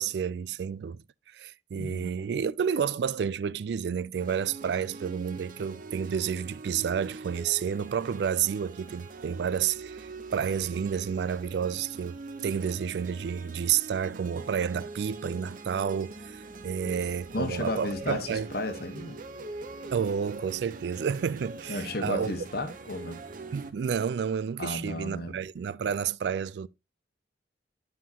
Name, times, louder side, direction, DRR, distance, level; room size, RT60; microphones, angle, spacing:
voice 1, 0.0-12.2 12.4-18.5 19.9-22.3 23.5-26.7, right 7 dB, 65° right, 0.3 m, -30 dB
voice 2, 1.8-2.1 16.8-16.9 17.3-19.2 21.7-23.2 24.6-25.4, left 2 dB, 55° left, 1.2 m, -33 dB
sound 1, 4.1-23.7, right 3 dB, 45° right, 0.7 m, -43 dB
9.8 x 5.6 x 2.8 m
head